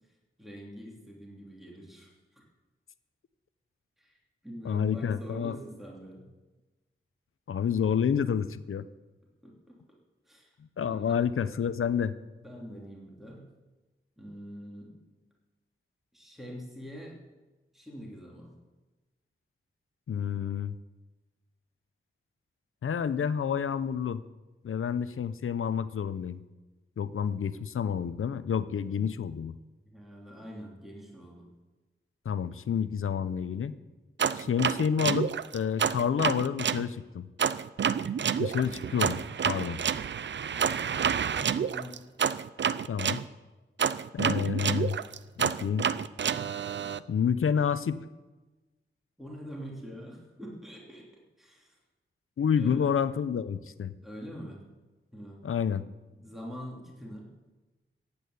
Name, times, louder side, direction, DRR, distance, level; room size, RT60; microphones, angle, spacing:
voice 1, 0.4-2.4 4.0-4.2 4.4-6.3 9.4-9.8 10.3-10.5 10.9-11.2 12.4-13.5 14.2-14.9 16.1-17.2 17.7-18.5 29.8-31.5 38.6-39.0 41.2-42.0 49.2-51.1 51.4-51.8 52.5-53.0 54.0-54.6 55.1-55.4 56.1-57.3, equal, ahead, -3 dB, 3.2 m, -44 dB
voice 2, 4.6-5.6 7.5-8.8 10.8-12.1 20.1-20.7 22.8-24.2 24.6-26.4 27.0-29.6 32.2-33.8 34.3-37.3 38.4-39.2 39.4-39.8 42.9-43.2 44.1-45.0 45.4-45.9 47.1-48.0 52.4-53.9 55.4-55.8, left 7 dB, 85° left, 13 dB, 0.8 m, -29 dB
sound 1, 34.2-36.8 37.4-43.2 43.8-47.0, right 7 dB, 60° right, 0.5 m, -29 dB
15.0 x 8.8 x 9.5 m, 1.2 s
wide cardioid pair, 145°, 21 cm